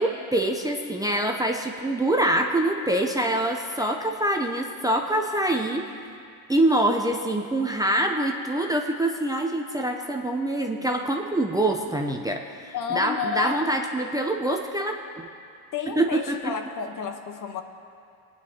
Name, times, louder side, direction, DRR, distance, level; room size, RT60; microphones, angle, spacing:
voice 1, 0.0-5.8 6.5-15.0 15.9-16.5, right 1 dB, 10° right, 2 dB, 0.6 m, -25 dB
voice 2, 12.7-13.7 15.7-17.6, left 7 dB, 45° left, 6 dB, 1.1 m, -31 dB
20.5 x 9.1 x 2.9 m, 2.4 s
supercardioid pair, 95°, 43 cm